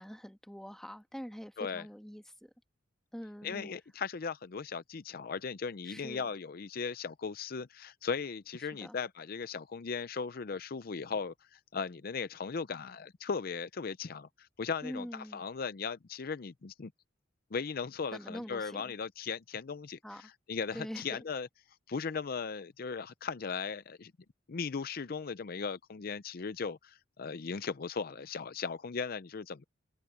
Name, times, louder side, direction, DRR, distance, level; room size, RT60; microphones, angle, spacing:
voice 1, 0.0-2.5 3.1-3.7 5.8-6.3 8.8-9.0 14.8-15.4 18.1-18.9 20.0-20.2 20.7-21.2, equal, 5° left, 1.4 m, -44 dB
voice 2, 3.4-16.9 17.5-21.5 21.9-24.1 24.5-29.6, left 5 dB, 55° left, 0.5 m, -37 dB
head